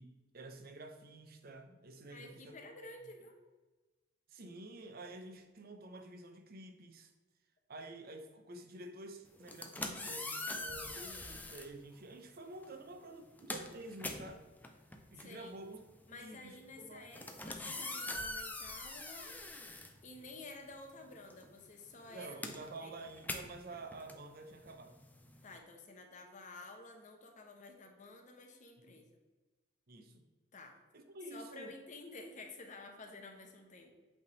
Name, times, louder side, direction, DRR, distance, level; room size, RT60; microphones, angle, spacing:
voice 1, 0.0-2.6 4.3-7.1 7.7-14.4 15.1-15.8 16.1-17.1 22.1-25.0 28.9-29.0 29.9-30.2 30.9-31.7, right 2 dB, 50° right, 6 dB, 0.7 m, -50 dB
voice 2, 2.1-3.3 15.2-15.5 16.1-19.4 20.0-22.4 22.8-22.9 25.4-29.1 30.5-30.8 31.3-33.9, left 2 dB, 40° left, 3 dB, 1.0 m, -51 dB
sound 1, 9.4-11.7 12.6-12.8 13.1-20.6 20.9-25.6, left 2 dB, 10° left, 0.5 m, -44 dB
8.2 x 3.6 x 4.0 m, 1.2 s
head